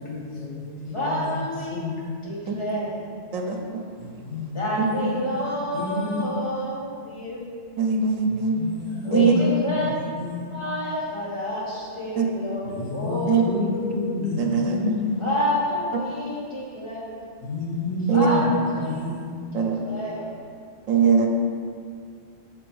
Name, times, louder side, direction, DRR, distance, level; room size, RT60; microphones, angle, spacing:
voice 1, 0.0-2.1 4.0-5.3 5.7-6.3 8.0-10.5 12.6-15.2 17.4-18.5 18.8-19.2, left 2 dB, 75° left, -4 dB, 1.6 m, -30 dB
voice 2, 0.9-1.9 2.2-3.1 4.5-7.5 9.0-10.0 10.5-14.3 15.2-17.1 18.1-19.0 19.5-20.3, left 1 dB, 25° left, -8 dB, 1.6 m, -29 dB
voice 3, 3.3-3.9 7.8-8.6 9.1-9.3 12.2-12.3 13.3-13.4 14.4-14.9 18.1-18.4 19.5-20.0 20.9-21.3, right 5 dB, 85° right, 3 dB, 1.0 m, -21 dB
6.9 x 3.3 x 4.7 m, 2.2 s
omnidirectional pair, 1.3 m